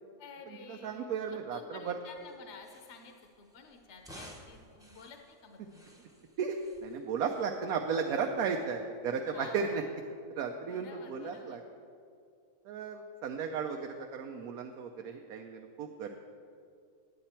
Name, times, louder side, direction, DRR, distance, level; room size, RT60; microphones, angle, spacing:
voice 1, 0.2-5.8 9.3-9.8 10.6-11.6, left 5 dB, 60° left, 4 dB, 1.0 m, -52 dB
voice 2, 0.7-2.0 6.4-9.8 10.4-11.6 12.6-16.2, right 6 dB, 85° right, 3 dB, 1.1 m, -35 dB
sound 1, 2.1-9.7, equal, 5° right, 0.7 m, -57 dB
10.0 x 9.0 x 4.3 m, 2.4 s
omnidirectional pair, 1.5 m